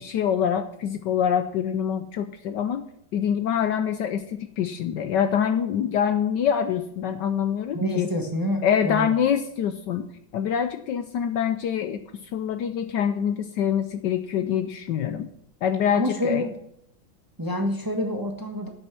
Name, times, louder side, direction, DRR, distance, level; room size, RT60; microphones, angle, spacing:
voice 1, 0.0-2.9 3.1-8.1 8.6-10.1 10.3-12.0 12.3-15.3 15.6-16.4, left 8 dB, 70° left, 8 dB, 1.2 m, -25 dB
voice 2, 7.7-9.1 15.9-16.5 17.4-18.7, equal, 15° right, 3 dB, 1.1 m, -27 dB
10.0 x 8.5 x 5.8 m, 0.74 s
omnidirectional pair, 2.2 m